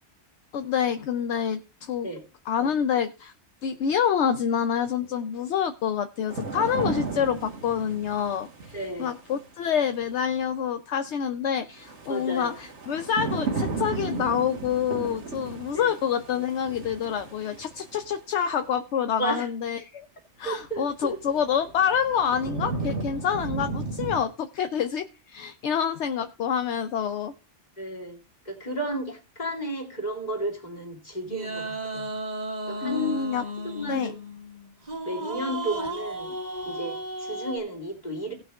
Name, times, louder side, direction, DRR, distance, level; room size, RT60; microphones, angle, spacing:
voice 1, 0.5-2.1 2.5-3.3 3.6-20.1 20.4-27.3 32.8-33.4 33.9-34.1, left 8 dB, 75° left, 9 dB, 1.0 m, -27 dB
sound 1, 6.3-9.4 11.8-18.1 20.7-20.8 21.4-24.2, right 4 dB, 70° right, 1.8 m, -34 dB
voice 2, 8.7-9.1 12.1-12.5 15.7-15.9 19.2-19.5 20.4-21.2 27.8-28.2 28.4-32.1 32.7-33.2 33.6-34.2 35.0-36.3 36.7-38.3, right 1 dB, 35° left, 0 dB, 3.1 m, -33 dB
sound 2, 31.3-37.6, right 1 dB, 35° right, 1.7 m, -34 dB
17.5 x 6.1 x 3.4 m, 0.31 s
omnidirectional pair, 1.2 m